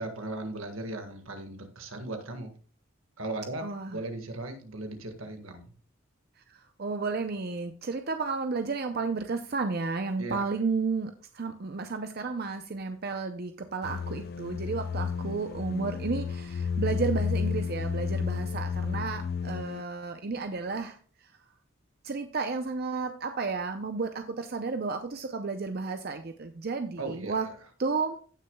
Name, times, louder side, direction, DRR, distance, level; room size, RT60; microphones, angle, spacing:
voice 1, 0.0-2.5 3.2-3.6 3.9-5.6 10.2-10.5 27.0-27.3, right 2 dB, 80° right, 6 dB, 1.7 m, -37 dB
voice 2, 3.6-4.0 6.5-21.0 22.0-27.5 27.8-28.2, right 4 dB, 50° right, 7 dB, 0.6 m, -32 dB
sound 1, 13.8-19.8, left 6 dB, 50° left, 0.3 m, -32 dB
16.0 x 6.3 x 2.3 m, 0.43 s
head